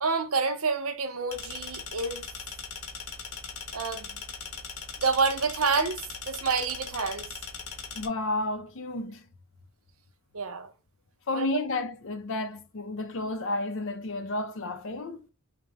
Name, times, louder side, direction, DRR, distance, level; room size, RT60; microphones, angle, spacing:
voice 1, 0.0-2.3 3.7-4.2 5.0-7.3 10.3-10.7 11.3-11.6, right 4 dB, 75° right, 0.8 m, -28 dB
sound 1, 1.3-8.1, left 5 dB, 85° left, 1.1 m, -40 dB
voice 2, 7.9-9.2 11.3-15.2, left 2 dB, 60° left, 0.6 m, -31 dB
4.9 x 2.1 x 3.3 m
head